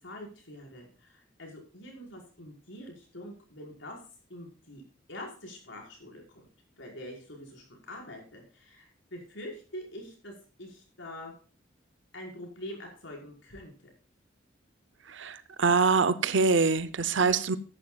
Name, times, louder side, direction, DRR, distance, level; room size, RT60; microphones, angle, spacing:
voice 1, 0.0-4.0 4.3-4.8 5.1-6.5 6.8-11.3 12.1-13.7, left 1 dB, 75° left, 5.3 m, -45 dB
voice 2, 15.1-17.6, right 4 dB, 70° right, 0.7 m, -24 dB
13.5 x 11.5 x 2.4 m
head